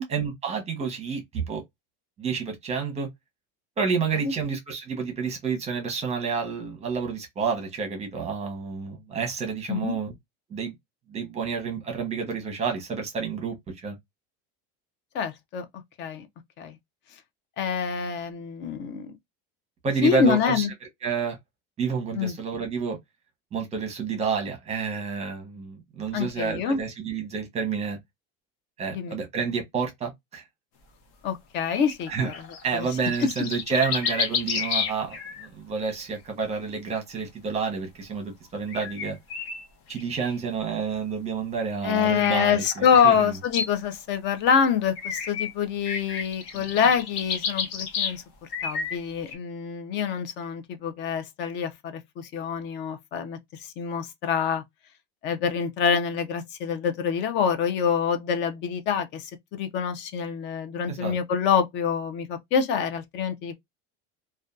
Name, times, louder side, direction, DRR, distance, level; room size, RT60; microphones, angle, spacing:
voice 1, 0.1-1.6 2.2-3.1 3.8-10.1 10.5-10.7 11.1-13.6 13.8-14.0 19.8-20.7 21.0-21.4 21.8-23.0 23.5-28.0 28.8-30.4 32.1-32.3 32.6-39.2 39.9-43.3 46.5-46.6 60.9-61.2, right 5 dB, 20° right, 0.8 m, -29 dB
voice 2, 15.1-15.6 16.0-16.3 16.6-16.8 17.6-19.2 20.0-20.7 22.1-22.3 26.1-26.8 28.9-29.2 31.2-32.3 32.7-32.9 33.2-33.3 41.8-48.2 48.6-54.6 55.2-63.6, left 7 dB, 40° left, 0.4 m, -26 dB
sound 1, 31.6-35.5 35.9-36.2 38.7-40.4 41.9-43.7 45.0-45.5 45.8-48.2 48.5-49.3, left 6 dB, 60° left, 0.8 m, -31 dB
2.5 x 2.2 x 2.3 m
cardioid pair, 155°, 29 cm